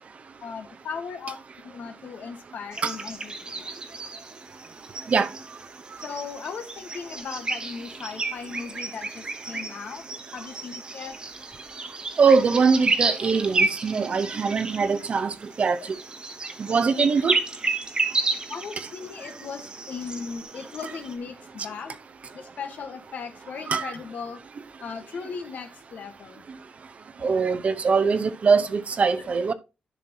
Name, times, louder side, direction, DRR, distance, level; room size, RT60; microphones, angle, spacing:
voice 1, 0.4-1.4 1.6-3.6 6.0-10.0 10.3-11.2 15.8-15.9 18.5-22.0 22.3-24.4 24.8-26.4 28.0-28.1 29.2-29.3, left 5 dB, 75° left, 1.3 m, -37 dB
sound 1, 2.7-21.1, right 3 dB, 30° right, 1.2 m, -32 dB
voice 2, 12.2-15.3 15.6-15.8 16.6-17.4 23.7-23.9 27.2-29.5, right 5 dB, 50° right, 0.7 m, -22 dB
11.0 x 5.9 x 2.8 m
cardioid pair, 100°, 3 cm